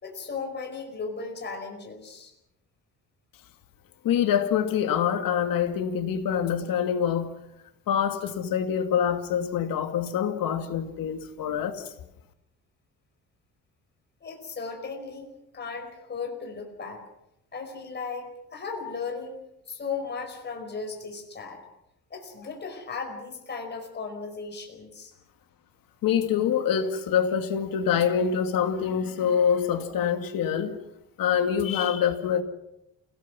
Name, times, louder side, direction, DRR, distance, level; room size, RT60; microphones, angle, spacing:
voice 1, 0.0-2.3 14.2-15.3 15.5-17.0 17.5-19.3 19.7-21.6 22.1-25.1, left 4 dB, 30° left, 4.9 m, -36 dB
voice 2, 4.0-7.3 7.9-11.9 26.0-30.8 31.2-32.4, left 8 dB, 75° left, 2.5 m, -25 dB
29.0 x 18.0 x 6.1 m
cardioid pair, 140°, 34 cm